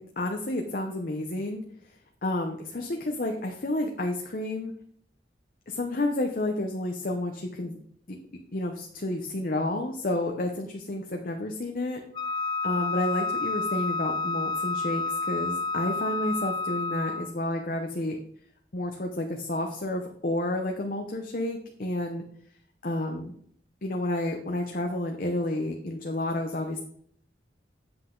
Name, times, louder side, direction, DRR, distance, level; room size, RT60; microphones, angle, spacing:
voice 1, 0.0-1.6 2.2-4.7 5.7-7.8 8.5-12.0 12.6-18.2 18.7-22.2 22.8-23.3 23.8-26.8, left 1 dB, 50° left, 3 dB, 0.8 m, -30 dB
Wind instrument woodwind instrument, 12.1-17.4, left 3 dB, 25° left, 0.4 m, -30 dB
8.1 x 7.8 x 3.8 m, 0.64 s
head